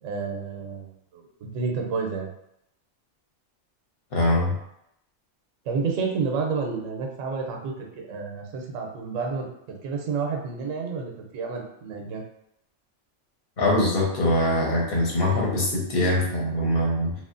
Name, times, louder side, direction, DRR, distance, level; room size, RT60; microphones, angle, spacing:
voice 1, 0.0-2.3 5.6-9.5 9.8-12.2, right 5 dB, 85° right, 2 dB, 0.9 m, -30 dB
voice 2, 4.1-4.6 13.6-17.1, left 1 dB, 55° left, -3 dB, 1.0 m, -23 dB
2.9 x 2.4 x 2.4 m, 0.77 s
omnidirectional pair, 1.3 m